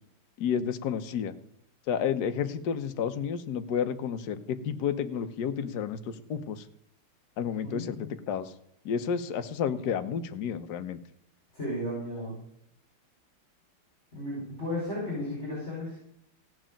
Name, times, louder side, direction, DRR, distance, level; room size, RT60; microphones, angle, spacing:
voice 1, 0.4-1.3 1.9-6.6 7.4-8.5 8.8-11.0, left 7 dB, 55° left, 9 dB, 1.3 m, -31 dB
voice 2, 7.4-8.1 11.5-12.4 14.1-16.0, left 1 dB, 30° left, -5 dB, 5.2 m, -34 dB
16.0 x 6.2 x 8.9 m, 0.75 s
omnidirectional pair, 2.4 m